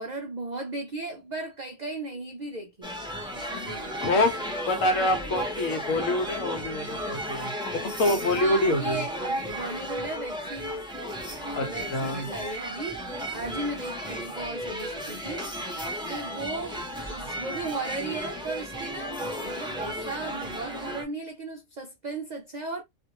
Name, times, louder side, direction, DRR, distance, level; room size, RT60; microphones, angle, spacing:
voice 1, 0.0-3.0 3.3-3.9 8.3-10.8 11.4-15.5 16.1-16.8 17.1-22.8, right 2 dB, 70° right, 0.4 m, -36 dB
sound 1, 2.8-21.0, equal, 5° right, 0.4 m, -34 dB
voice 2, 4.0-4.3 4.7-9.0 11.5-12.3, left 2 dB, 75° left, 1.2 m, -26 dB
2.5 x 2.4 x 2.8 m
omnidirectional pair, 1.4 m